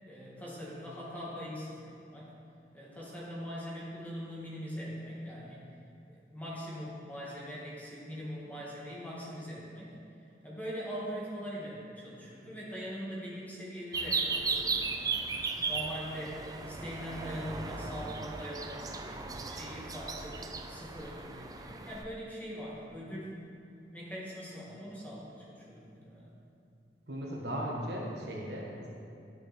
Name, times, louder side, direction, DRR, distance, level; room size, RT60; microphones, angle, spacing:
voice 1, 0.1-2.3 2.7-5.6 6.1-10.0 10.4-15.2 15.7-23.3 23.9-26.3, equal, 10° left, -6 dB, 1.9 m, -42 dB
sound 1, 13.9-22.0, right 4 dB, 20° right, 0.4 m, -36 dB
voice 2, 27.1-28.9, equal, 65° right, -2 dB, 1.5 m, -37 dB
10.5 x 6.5 x 4.4 m, 2.5 s
head